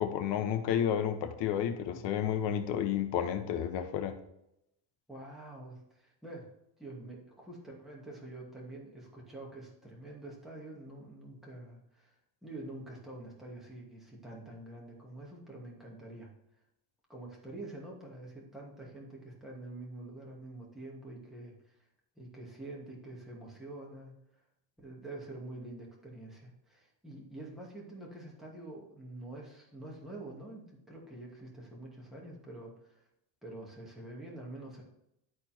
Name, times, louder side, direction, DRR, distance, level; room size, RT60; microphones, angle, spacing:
voice 1, 0.0-4.2, left 9 dB, 65° left, 8 dB, 1.2 m, -31 dB
voice 2, 5.1-6.5 6.8-16.3 17.1-21.8 22.2-24.1 24.8-33.0 33.4-34.8, right 2 dB, ahead, -4 dB, 2.4 m, -46 dB
12.0 x 4.3 x 4.4 m, 0.81 s
cardioid pair, 135°, 45 cm